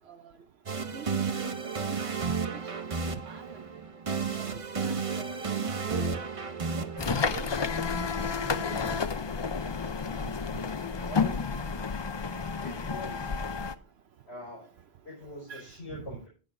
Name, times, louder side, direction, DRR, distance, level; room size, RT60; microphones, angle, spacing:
sound 1, 0.7-8.6, right 5 dB, 35° right, 0.7 m, -33 dB
voice 1, 1.4-2.0 2.2-2.6 3.2-3.6 4.4-5.5 5.8-6.2 6.8-7.5 7.9-9.0 10.5-10.6 15.5-15.6, right 8 dB, 70° right, 1.0 m, -44 dB
sound 2, 7.0-13.8, left 5 dB, 35° left, 0.4 m, -31 dB
voice 2, 11.1-11.7 12.6-13.4 14.3-14.7 15.0-16.3, left 2 dB, 75° left, 5.3 m, -43 dB
18.5 x 6.4 x 2.6 m
omnidirectional pair, 1.1 m